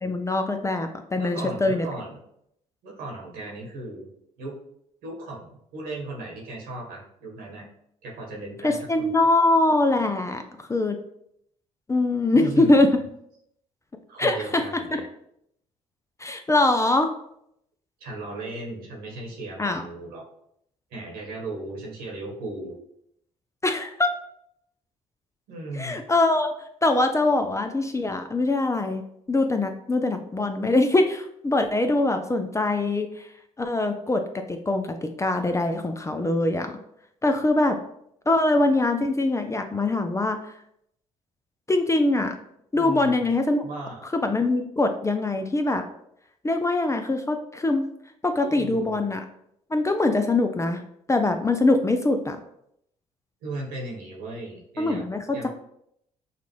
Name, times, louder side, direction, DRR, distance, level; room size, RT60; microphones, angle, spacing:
voice 1, 0.0-1.9 8.6-11.0 11.9-13.0 14.2-14.6 14.9-15.0 16.2-17.1 19.6-19.8 23.6-24.1 25.7-26.5 26.8-29.0 29.3-33.3 33.6-36.8 37.2-37.8 38.3-40.4 41.7-42.4 42.7-43.6 44.0-45.8 46.4-47.9 48.2-49.2 49.7-50.8 51.1-52.4 54.8-55.5, left 2 dB, 20° left, 6 dB, 0.5 m, -23 dB
voice 2, 1.1-2.2 2.8-4.1 4.4-4.5 5.0-7.7 8.0-9.1 12.3-12.8 14.1-15.0 18.0-20.2 20.9-22.7 25.5-26.0 42.7-43.3 43.6-44.0 48.4-49.0 53.4-55.0 55.3-55.5, right 2 dB, 75° right, -2 dB, 1.4 m, -36 dB
5.7 x 2.5 x 3.1 m, 0.74 s
hypercardioid pair, 55°, 16 cm